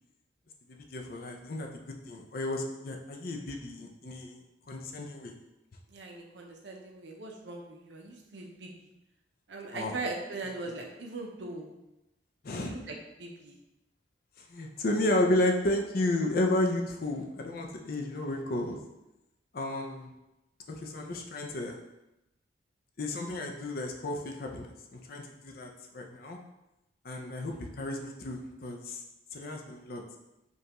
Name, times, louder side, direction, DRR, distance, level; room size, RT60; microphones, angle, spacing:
voice 1, 0.9-1.7 2.0-4.4 4.7-5.3 9.7-10.0 12.4-12.7 14.4-18.8 19.5-20.1 20.7-21.8 23.0-26.4 27.0-29.0 29.3-30.0, left 1 dB, 50° left, 2 dB, 0.5 m, -32 dB
voice 2, 5.9-8.7 9.5-11.7 12.6-13.6, right 3 dB, 70° right, 1 dB, 0.7 m, -40 dB
5.3 x 2.4 x 2.9 m, 0.93 s
head